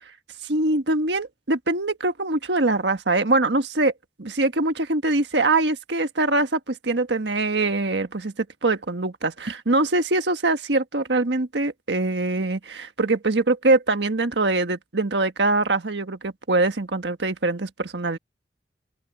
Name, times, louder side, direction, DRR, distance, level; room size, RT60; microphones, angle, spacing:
voice 1, 0.5-3.9 4.2-18.2, right 2 dB, 80° right, 1.5 m, -23 dB
open air
head